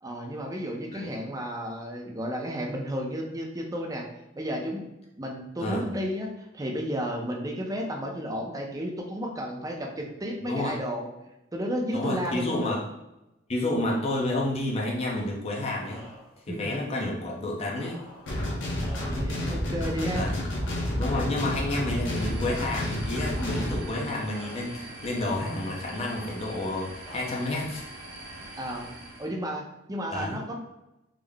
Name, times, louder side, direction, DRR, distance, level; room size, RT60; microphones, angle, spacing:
voice 1, 0.0-4.1 4.3-4.9 5.2-11.1 11.5-12.8 16.5-16.8 19.0-20.2 28.6-28.9 29.2-30.6, equal, 20° right, 1 dB, 0.5 m, -32 dB
voice 2, 10.4-10.7 11.9-12.8 13.5-16.0 16.5-18.0 20.1-20.4 21.0-27.9 30.1-30.4, left 1 dB, 35° left, -3 dB, 0.6 m, -30 dB
sound 1, 14.9-15.4 15.8-16.4 17.6-19.4 20.5-21.3 21.6-22.1 23.3-24.0 24.3-24.8 26.0-26.6 27.0-27.6, left 1 dB, 50° left, 1.1 m, -48 dB
sound 2, 18.3-23.8, left 1 dB, 70° left, 0.8 m, -30 dB
sound 3, 22.0-29.3, right 1 dB, 60° right, 0.9 m, -43 dB
3.6 x 2.0 x 3.4 m, 0.92 s
head